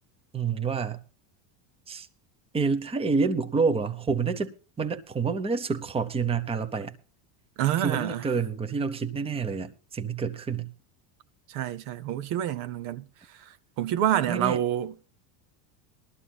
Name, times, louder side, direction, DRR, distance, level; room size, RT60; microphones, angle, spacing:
voice 1, 0.3-1.0 1.9-2.1 2.5-6.9 7.8-10.7 14.3-14.6, right 5 dB, 10° right, 0.8 m, -28 dB
voice 2, 7.6-8.2 11.5-13.0 13.8-15.1, right 11 dB, 65° right, 0.9 m, -27 dB
20.0 x 13.0 x 2.3 m
supercardioid pair, 135°, 48 cm